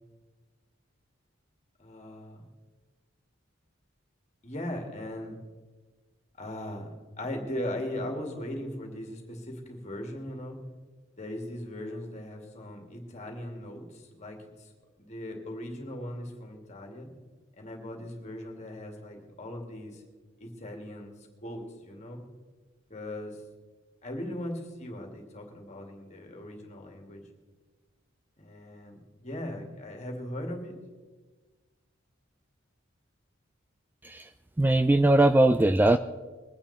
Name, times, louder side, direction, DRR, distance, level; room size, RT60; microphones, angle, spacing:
voice 1, 1.8-2.5 4.4-5.4 6.4-6.9 7.2-10.6 11.2-14.7 15.0-17.1 17.6-20.0 20.4-21.1 21.4-22.2 22.9-23.4 24.0-27.2 28.4-30.8, left 1 dB, 35° left, 2 dB, 2.5 m, -39 dB
voice 2, 34.6-36.0, right 2 dB, 10° right, 10 dB, 0.3 m, -20 dB
22.5 x 9.0 x 4.2 m, 1.3 s
head